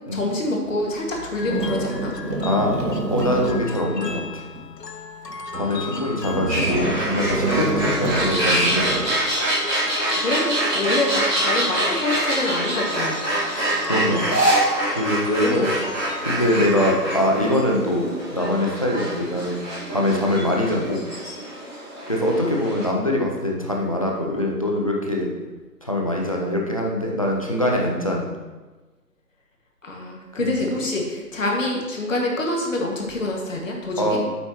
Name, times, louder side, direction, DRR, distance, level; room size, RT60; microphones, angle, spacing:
voice 1, 0.1-2.1 5.6-6.5 10.2-13.2 15.4-15.8 22.3-22.5 29.8-34.2, left 2 dB, 55° left, 0 dB, 2.0 m, -26 dB
sound 1, 0.6-0.8 1.4-4.7 5.3-5.8 6.2-9.2, right 2 dB, 85° right, 1.9 m, -27 dB
sound 2, 1.1-17.5, left 2 dB, 85° left, 1.2 m, -36 dB
voice 2, 2.4-2.7 3.1-4.4 5.5-9.0 13.5-14.2 14.9-15.7 16.2-19.6 19.9-21.0 22.1-25.3 25.8-28.3 30.4-30.5 34.0-34.2, left 1 dB, 25° left, -1 dB, 0.7 m, -23 dB
sound 3, 6.5-22.8, right 1 dB, ahead, 0.9 m, -25 dB
8.5 x 8.4 x 3.0 m, 1.2 s
figure-of-eight pair, 160°, 47 cm